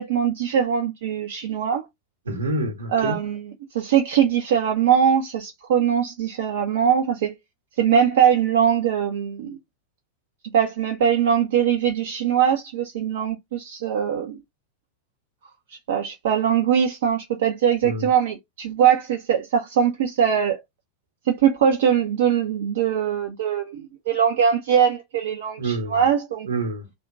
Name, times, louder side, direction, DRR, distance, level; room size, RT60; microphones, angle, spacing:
voice 1, 0.0-1.8 2.9-7.4 7.8-9.6 10.5-14.4 15.9-20.6 21.3-26.5, right 8 dB, 55° right, 0.6 m, -21 dB
voice 2, 2.2-3.2 17.8-18.1 25.6-26.0 26.5-26.9, right 2 dB, 70° right, 1.1 m, -27 dB
2.9 x 2.3 x 3.6 m
figure-of-eight pair, 90°, 0 cm